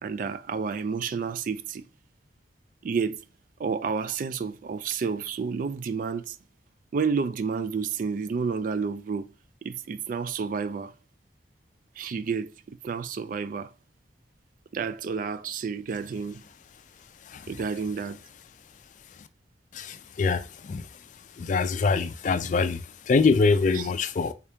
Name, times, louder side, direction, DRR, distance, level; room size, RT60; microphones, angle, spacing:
voice 1, 0.0-1.8 2.8-3.2 3.6-6.4 6.9-9.3 9.6-10.9 12.0-13.7 14.7-16.4 17.5-18.2 23.7-23.9, right 5 dB, 45° right, 0.3 m, -30 dB
voice 2, 19.7-20.9 21.4-24.3, left 4 dB, 45° left, 0.3 m, -24 dB
3.6 x 2.8 x 3.4 m
head